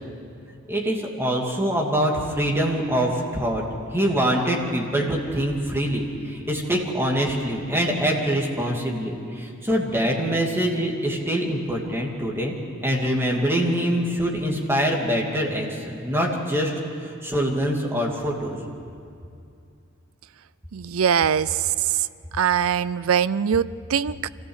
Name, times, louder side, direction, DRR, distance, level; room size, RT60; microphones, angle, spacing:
voice 1, 0.7-3.6 3.9-12.5 12.8-16.7 17.0-18.6, equal, 10° right, -1 dB, 2.6 m, -24 dB
voice 2, 20.7-21.6 22.4-24.3, right 7 dB, 85° right, 18 dB, 0.5 m, -22 dB
25.0 x 15.5 x 8.1 m, 2.5 s
head